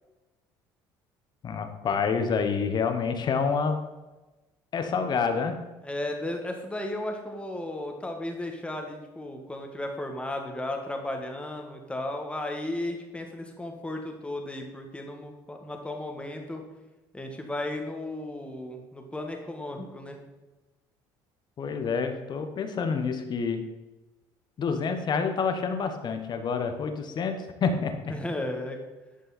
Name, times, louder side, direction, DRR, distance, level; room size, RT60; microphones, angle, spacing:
voice 1, 1.4-3.8 4.7-5.6 21.6-23.6 24.6-28.1, left 5 dB, 45° left, 7 dB, 1.2 m, -28 dB
voice 2, 5.8-16.6 17.1-20.2 28.1-28.8, left 1 dB, 10° left, 3 dB, 1.7 m, -34 dB
11.0 x 5.4 x 4.3 m, 1.1 s
supercardioid pair, 85°, 10 cm